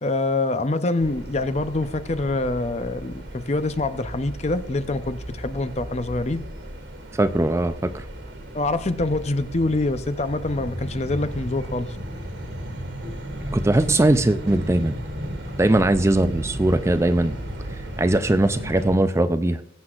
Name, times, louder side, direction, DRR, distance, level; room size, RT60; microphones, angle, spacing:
voice 1, 0.0-6.4 8.5-12.0, left 2 dB, 35° left, 11 dB, 0.6 m, -25 dB
sound 1, 1.0-19.0, equal, 90° right, 2.4 m, -35 dB
voice 2, 7.1-8.1 13.5-15.0 15.6-17.4 17.8-19.6, right 1 dB, 15° right, 11 dB, 0.4 m, -20 dB
21.5 x 7.9 x 2.5 m, 0.69 s
head